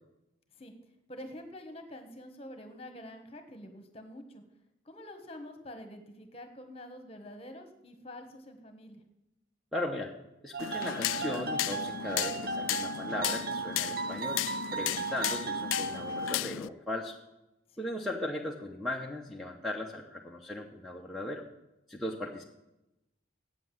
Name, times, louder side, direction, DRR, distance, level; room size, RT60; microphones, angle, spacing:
voice 1, 1.1-4.4 4.8-9.0 17.7-17.9, left 1 dB, 30° left, 7 dB, 1.4 m, -47 dB
voice 2, 9.7-10.1 10.4-14.4 14.7-17.2 17.8-21.5 21.9-22.4, left 1 dB, ahead, -3 dB, 0.9 m, -37 dB
sound 1, 10.5-16.4, right 4 dB, 50° right, 0.6 m, -36 dB
sound 2, 10.6-16.7, left 13 dB, 90° left, 0.3 m, -35 dB
8.6 x 7.7 x 7.6 m, 0.91 s
head